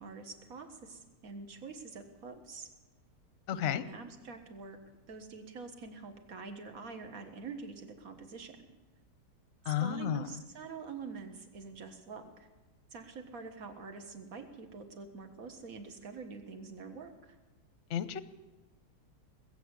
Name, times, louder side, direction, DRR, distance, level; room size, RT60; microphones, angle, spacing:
voice 1, 0.0-2.7 3.5-4.8 5.1-8.8 9.7-12.5 12.9-17.4, right 4 dB, 55° right, 6 dB, 1.9 m, -46 dB
voice 2, 3.5-3.8 9.7-10.2 17.9-18.2, left 10 dB, 55° left, 14 dB, 0.9 m, -32 dB
20.5 x 8.4 x 8.3 m, 1.2 s
omnidirectional pair, 1.8 m